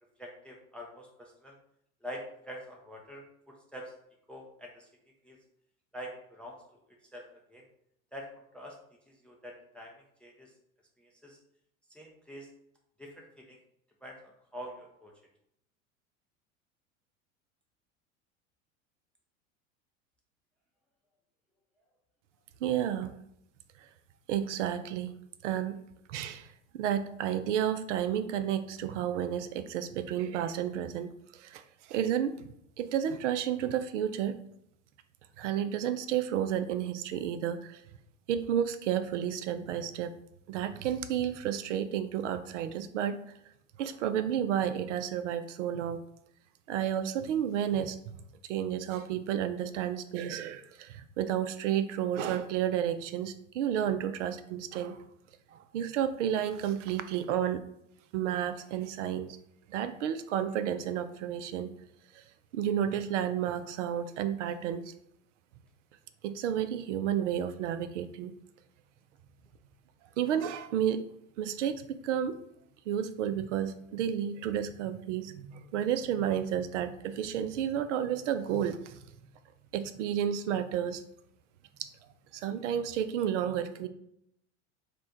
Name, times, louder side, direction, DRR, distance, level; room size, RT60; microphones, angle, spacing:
voice 1, 0.2-1.5 2.0-3.9 4.3-4.9 5.2-5.4 5.9-6.6 7.1-7.6 8.1-8.3 8.5-8.8 9.1-10.5 11.0-11.4 11.9-12.5 13.0-13.6 14.0-15.1, equal, 5° left, 0 dB, 0.3 m, -45 dB
voice 2, 22.6-23.1 24.3-25.1 25.4-25.8 26.1-26.5 26.7-31.6 31.9-32.4 32.8-34.4 35.4-37.8 38.3-40.1 40.5-43.2 43.8-46.0 46.7-48.0 48.4-55.0 55.5-57.6 58.1-59.3 59.7-61.7 62.1-62.2 62.5-64.9 66.2-68.3 70.2-71.0 71.4-72.4 72.9-79.0 79.7-81.0 81.8-81.9 82.3-83.9, right 9 dB, 60° right, 10 dB, 0.5 m, -31 dB
3.3 x 2.2 x 4.3 m, 0.75 s
figure-of-eight pair, 85°, 40 cm